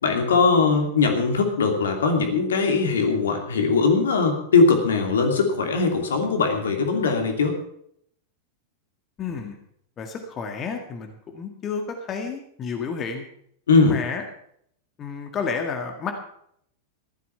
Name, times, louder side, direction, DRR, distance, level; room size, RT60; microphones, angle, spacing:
voice 1, 0.0-7.6 13.7-14.0, left 4 dB, 65° left, 3 dB, 2.7 m, -20 dB
voice 2, 9.2-9.6 10.0-13.3 13.7-14.2 15.0-16.1, left 5 dB, 30° left, 4 dB, 1.8 m, -31 dB
14.5 x 12.5 x 5.7 m, 0.70 s
figure-of-eight pair, 90°, 0 cm